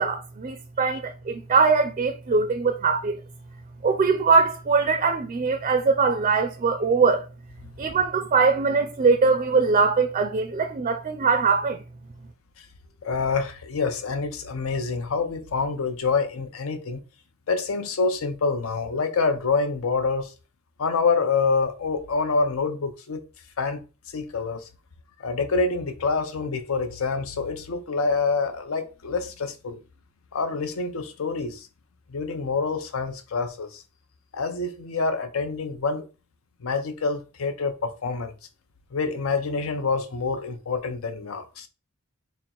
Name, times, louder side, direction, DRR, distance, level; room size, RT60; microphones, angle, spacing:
voice 1, 0.0-3.2 3.8-7.3 7.8-11.8, right 4 dB, 35° right, 0.4 m, -22 dB
voice 2, 13.0-17.0 17.5-20.3 20.8-23.2 23.6-23.8 24.1-24.7 25.2-29.8 30.3-31.7 32.1-33.8 34.3-36.0 36.6-38.3 38.9-41.7, left 4 dB, 80° left, 0.6 m, -26 dB
4.3 x 2.1 x 3.8 m
head